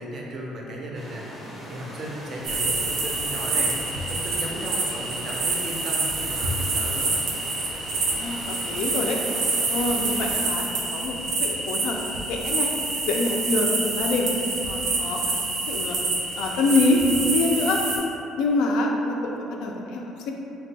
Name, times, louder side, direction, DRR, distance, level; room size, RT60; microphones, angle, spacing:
voice 1, 0.0-3.8 4.1-7.1, right 1 dB, 40° right, -1 dB, 0.4 m, -36 dB
sound 1, 0.9-10.5, equal, 10° left, 0.5 m, -40 dB
sound 2, 2.4-18.0, right 3 dB, 80° right, 0.6 m, -27 dB
voice 2, 8.1-9.2 9.7-11.1 11.4-12.0 12.3-12.7 13.1-14.3 14.6-15.4 15.7-16.0 16.4-17.8 18.4-20.3, left 2 dB, 75° left, 0 dB, 0.3 m, -25 dB
2.6 x 2.2 x 3.9 m, 2.8 s
cardioid pair, 180°, 0 cm